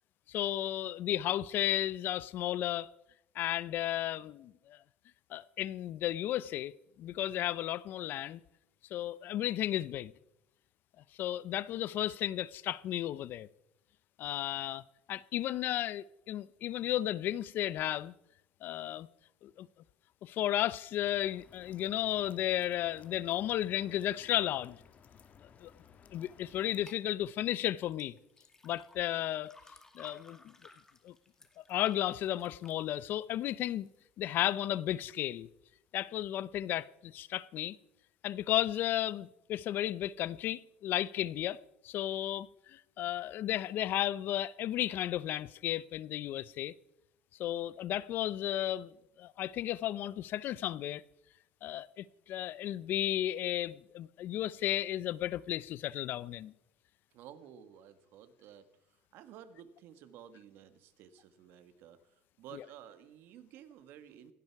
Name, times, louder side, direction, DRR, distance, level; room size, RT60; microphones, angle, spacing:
voice 1, 0.3-2.9 3.3-4.8 5.3-6.7 7.0-8.4 8.9-10.1 11.2-13.5 14.2-14.8 15.1-18.1 18.6-19.1 19.4-19.7 20.2-24.8 25.6-25.7 26.1-28.2 28.6-29.6 29.9-30.5 31.0-31.1 31.6-33.9 34.2-35.5 35.9-37.8 38.2-46.7 47.4-51.0 51.6-56.5 62.5-62.6, left 13 dB, 55° left, 0.6 m, -34 dB
sound 1, 21.0-26.9, left 7 dB, 40° left, 1.5 m, -59 dB
sound 2, 26.9-27.0 27.9-34.1 34.5-35.0 35.5-35.6, left 2 dB, 15° left, 2.2 m, -59 dB
voice 2, 57.1-64.3, right 9 dB, 70° right, 1.7 m, -53 dB
17.5 x 16.0 x 4.7 m
cardioid pair, 115°, 4 cm